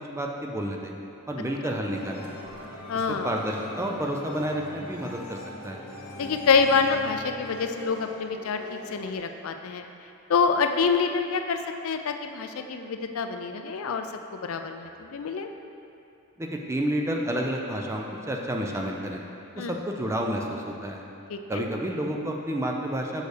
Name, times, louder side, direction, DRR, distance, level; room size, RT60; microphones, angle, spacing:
voice 1, 0.2-0.9 1.3-2.3 3.2-5.4 5.6-5.8 16.4-19.2 19.6-21.0 21.5-23.2, right 1 dB, 10° right, 0 dB, 0.4 m, -30 dB
sound 1, 1.9-9.2, equal, 90° left, 1.1 m, -41 dB
voice 2, 2.9-3.3 6.1-9.8 10.3-14.1 14.3-15.5 19.6-19.8 21.3-21.7, left 5 dB, 70° left, 6 dB, 0.4 m, -26 dB
6.6 x 6.2 x 3.3 m, 2.8 s
head